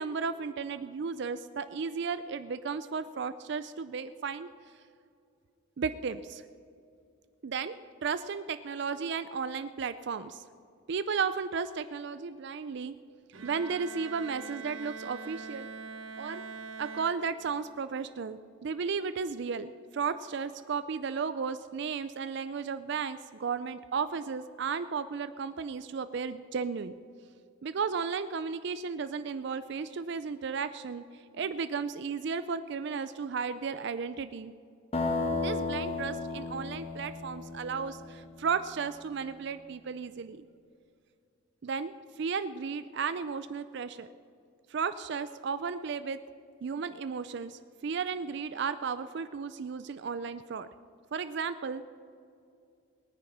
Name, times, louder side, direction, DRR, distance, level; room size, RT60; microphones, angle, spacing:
voice 1, 0.0-4.5 5.8-6.4 7.4-10.4 10.9-13.0 13.4-15.7 16.2-16.4 16.8-26.9 27.6-34.5 35.3-40.4 41.6-44.1 44.7-46.2 46.6-50.7 51.1-51.8, right 5 dB, 55° right, 12 dB, 0.4 m, -34 dB
Bowed string instrument, 13.3-17.8, right 4 dB, 75° right, 1.1 m, -43 dB
sound 1, 34.9-38.7, left 3 dB, 30° left, 1.5 m, -34 dB
19.0 x 9.6 x 5.9 m, 2.5 s
head